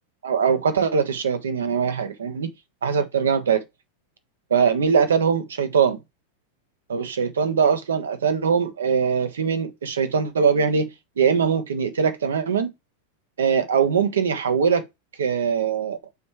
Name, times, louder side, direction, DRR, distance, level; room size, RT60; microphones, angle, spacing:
voice 1, 0.2-2.5 2.8-3.6 4.5-6.0 6.9-10.9 11.2-12.7 13.4-14.8 15.2-16.0, right 6 dB, 65° right, 1.1 m, -21 dB
7.0 x 3.3 x 4.6 m
figure-of-eight pair, 90°, 0 cm